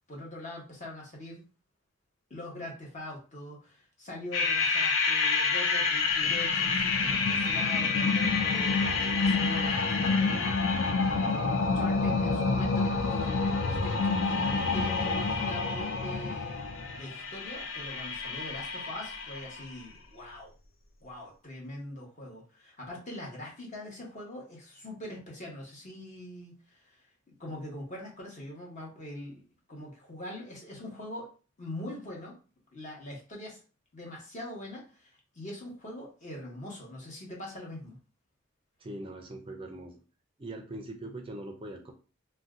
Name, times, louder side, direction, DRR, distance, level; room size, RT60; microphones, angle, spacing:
voice 1, 0.0-1.4 2.3-16.6 16.9-20.5 21.0-27.0 27.3-29.4 29.7-31.3 31.6-32.3 32.7-33.6 33.9-38.0, left 1 dB, 40° left, -3 dB, 1.0 m, -42 dB
sound 1, 4.3-19.6, left 4 dB, 70° left, 0.5 m, -28 dB
voice 2, 38.8-40.0 40.4-41.9, right 1 dB, 25° right, 3 dB, 0.4 m, -41 dB
2.6 x 2.2 x 3.5 m, 0.36 s
head